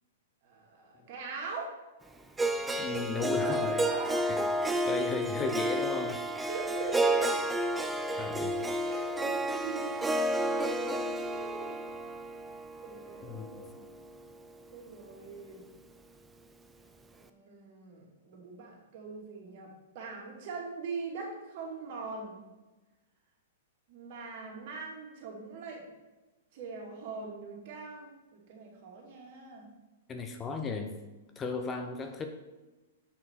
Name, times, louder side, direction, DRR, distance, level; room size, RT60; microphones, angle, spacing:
voice 1, 0.4-1.8 3.4-5.0 6.5-7.5 8.1-8.3 8.6-11.8 12.8-13.7 14.7-15.6 17.1-22.4 23.9-25.9 26.5-29.7, right 4 dB, 55° right, 0 dB, 2.4 m, -42 dB
Harp, 2.4-14.5, right 1 dB, 10° right, 0.6 m, -31 dB
voice 2, 2.8-3.8 4.2-4.4 4.9-6.3 8.2-8.5 13.2-13.7 30.1-30.9 31.4-32.2, left 4 dB, 20° left, 5 dB, 0.8 m, -35 dB
7.4 x 5.9 x 4.6 m, 1.1 s
hypercardioid pair, 120°, 0 cm